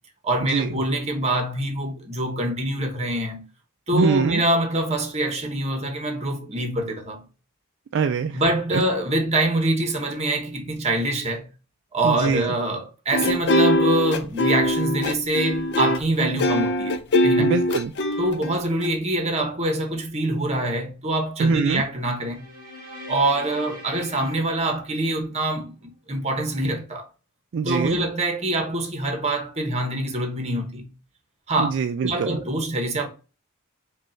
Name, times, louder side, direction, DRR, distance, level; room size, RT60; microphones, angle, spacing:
voice 1, 0.2-3.4 3.9-7.2 8.3-11.5 11.9-17.6 18.2-22.4 23.1-27.1 27.6-30.9 31.5-31.7 32.0-33.1, right 1 dB, 30° right, 1.0 m, -25 dB
voice 2, 3.9-4.4 7.9-8.4 8.7-8.8 12.0-12.5 17.4-17.9 21.4-21.8 27.5-28.0 31.6-32.4, right 5 dB, 55° right, 0.3 m, -23 dB
sound 1, 13.1-18.9, left 1 dB, 50° left, 0.5 m, -22 dB
sound 2, 22.1-25.5, left 1 dB, 15° right, 2.0 m, -42 dB
5.1 x 2.3 x 4.3 m
head